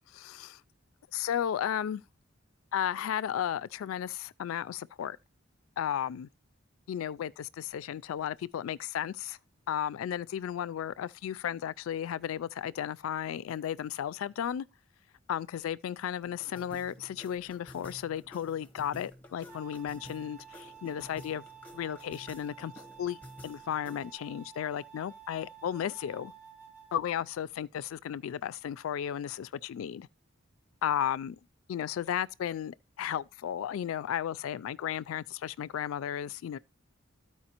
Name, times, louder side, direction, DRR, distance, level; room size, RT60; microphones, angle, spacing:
voice 1, 0.1-0.6 1.1-2.0 2.7-5.2 5.8-6.3 6.9-9.4 9.7-14.7 15.3-21.4 21.7-23.2 23.4-26.3 26.9-30.1 30.8-31.4 31.7-36.6, left 9 dB, 90° left, 0.3 m, -34 dB
sound 1, 16.2-24.2, left 1 dB, 10° left, 1.0 m, -52 dB
sound 2, 19.4-27.0, right 8 dB, 10° right, 5.6 m, -52 dB
13.5 x 4.6 x 2.9 m
head